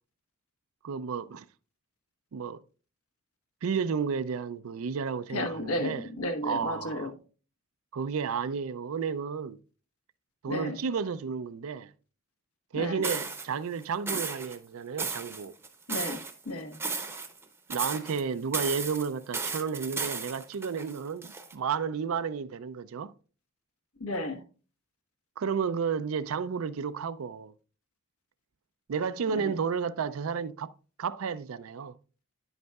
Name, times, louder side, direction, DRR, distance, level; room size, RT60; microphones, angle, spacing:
voice 1, 0.8-1.4 2.3-2.6 3.6-6.1 6.4-7.1 7.9-9.6 10.4-11.9 12.7-15.5 17.7-23.1 25.4-27.5 28.9-30.7 31.0-31.9, right 6 dB, 75° right, 0.4 m, -32 dB
voice 2, 5.3-7.1 10.5-10.8 12.7-13.0 15.9-16.8 24.0-24.4 29.3-29.5, left 1 dB, 85° left, 1.3 m, -33 dB
sound 1, 13.0-13.4 14.1-14.6 15.0-16.3 16.7-17.4 17.7-18.2 18.5-21.5, right 4 dB, 10° right, 0.7 m, -34 dB
10.0 x 7.9 x 2.3 m
head